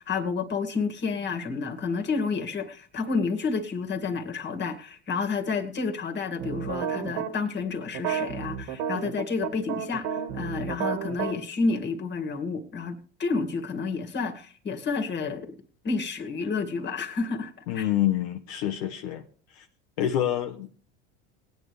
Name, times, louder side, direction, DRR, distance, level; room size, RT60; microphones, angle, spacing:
voice 1, 0.0-15.6 15.8-17.9, left 4 dB, 30° left, 2.1 m, -30 dB
sound 1, 6.4-7.3 7.9-11.3, right 8 dB, 65° right, 1.9 m, -31 dB
voice 2, 17.7-19.2 19.5-19.7 20.0-20.7, left 11 dB, 70° left, 1.2 m, -27 dB
19.0 x 9.1 x 3.4 m
hypercardioid pair, 90°, 33 cm